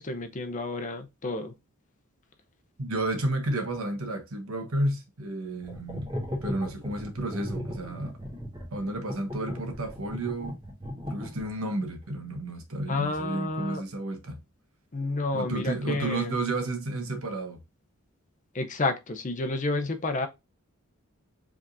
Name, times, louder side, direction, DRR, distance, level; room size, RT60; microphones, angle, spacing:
voice 1, 0.0-1.5 12.9-13.8 14.9-16.3 18.5-20.3, left 2 dB, 35° left, 0.6 m, -30 dB
voice 2, 2.8-6.1 6.4-8.2 8.7-10.6 11.1-14.4 15.3-17.6, right 2 dB, 70° right, 1.1 m, -31 dB
sound 1, 5.6-11.7, equal, 20° right, 1.6 m, -37 dB
5.0 x 3.5 x 2.6 m
head